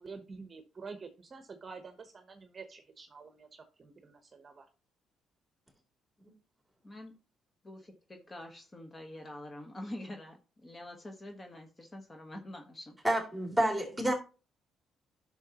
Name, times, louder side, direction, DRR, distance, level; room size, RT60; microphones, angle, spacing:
voice 1, 0.0-4.7, right 4 dB, 35° right, 1.0 m, -48 dB
voice 2, 6.8-7.1 7.6-13.0, left 1 dB, 25° left, 1.3 m, -46 dB
voice 3, 13.0-14.1, right 1 dB, 5° right, 2.9 m, -29 dB
10.5 x 6.2 x 3.0 m
cardioid pair, 100°, 0 cm